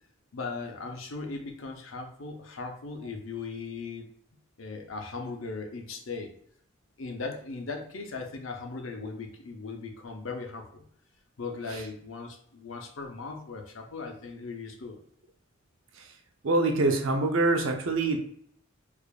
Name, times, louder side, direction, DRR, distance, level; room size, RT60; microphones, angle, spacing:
voice 1, 0.3-4.1 4.6-6.3 7.0-10.8 11.4-15.0, left 4 dB, 75° left, 3 dB, 0.7 m, -38 dB
voice 2, 16.4-18.2, right 2 dB, 75° right, 3 dB, 0.6 m, -24 dB
4.8 x 2.5 x 2.4 m, 0.64 s
head